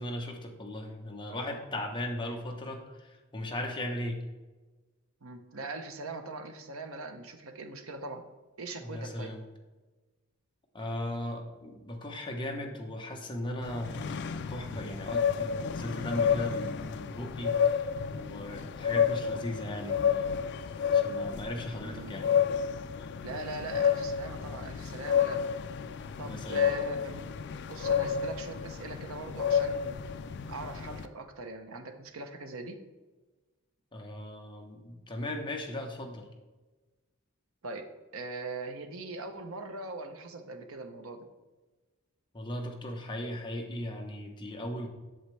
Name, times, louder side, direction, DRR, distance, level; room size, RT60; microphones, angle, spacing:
voice 1, 0.0-4.2 8.8-9.4 10.7-20.5 20.9-22.3 26.2-26.7 33.9-36.3 42.3-44.9, left 1 dB, 25° left, 1 dB, 1.0 m, -37 dB
voice 2, 5.2-8.2 8.6-9.3 21.8-22.2 23.2-25.4 26.2-27.2 27.6-30.0 30.5-32.8 37.6-37.9 38.1-41.3, right 3 dB, 80° right, 6 dB, 0.9 m, -41 dB
sound 1, 13.6-31.1, left 7 dB, 55° left, 0.4 m, -30 dB
8.0 x 7.2 x 3.3 m, 1.2 s
head